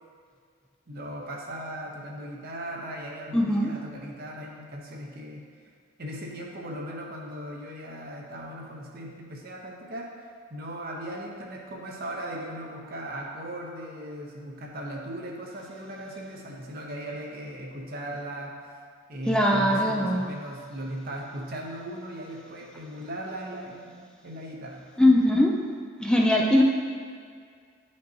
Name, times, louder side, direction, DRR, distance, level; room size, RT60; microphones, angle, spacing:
voice 1, 0.9-5.5 6.0-10.1 10.5-18.6 19.1-24.9, right 1 dB, 45° right, -1 dB, 0.8 m, -38 dB
voice 2, 3.3-3.8 19.3-20.3 25.0-25.7 26.0-26.6, left 1 dB, 5° left, -1 dB, 0.4 m, -21 dB
10.5 x 5.3 x 2.8 m, 2.1 s
head